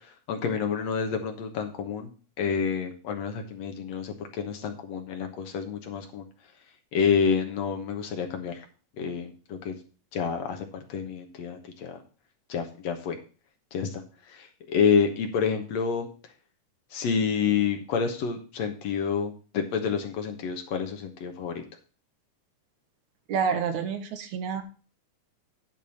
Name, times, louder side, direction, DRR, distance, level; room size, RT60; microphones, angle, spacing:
voice 1, 0.0-2.1 2.4-6.3 6.9-8.7 9.0-9.8 10.1-12.0 12.5-13.2 13.7-16.1 16.9-21.6, left 6 dB, 65° left, 4 dB, 2.2 m, -28 dB
voice 2, 23.3-24.6, right 6 dB, 75° right, 8 dB, 2.3 m, -28 dB
10.5 x 4.7 x 7.0 m, 0.37 s
omnidirectional pair, 3.6 m